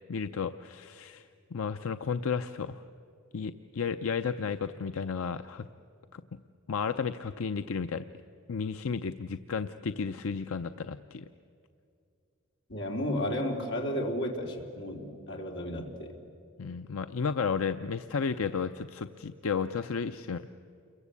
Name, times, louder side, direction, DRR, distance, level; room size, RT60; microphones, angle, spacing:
voice 1, 0.1-2.8 3.3-5.7 6.1-6.2 6.7-8.1 8.5-11.3 16.6-20.4, left 5 dB, 85° left, 9 dB, 0.6 m, -33 dB
voice 2, 12.7-16.1, left 1 dB, 60° left, 0 dB, 3.5 m, -33 dB
29.0 x 22.5 x 8.4 m, 2.5 s
head